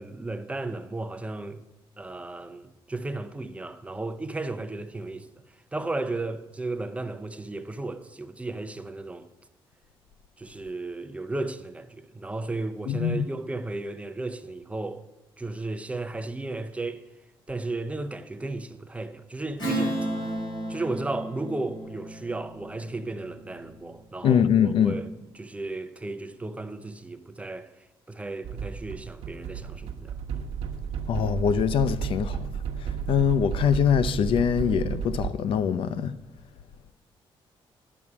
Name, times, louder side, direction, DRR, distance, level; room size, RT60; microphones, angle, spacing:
voice 1, 0.0-1.6 2.0-5.3 5.7-9.3 10.4-15.0 15.4-17.0 17.5-20.1 20.7-25.1 25.3-30.4, right 2 dB, 15° right, 0.6 m, -34 dB
voice 2, 12.9-13.3 24.2-25.0 31.1-32.5 32.8-36.2, left 8 dB, 65° left, 0.5 m, -23 dB
Strum, 19.6-24.5, right 1 dB, 50° left, 5.0 m, -34 dB
sound 1, 28.4-35.3, right 7 dB, 90° right, 0.8 m, -32 dB
11.0 x 6.1 x 8.5 m
cardioid pair, 135°, 10 cm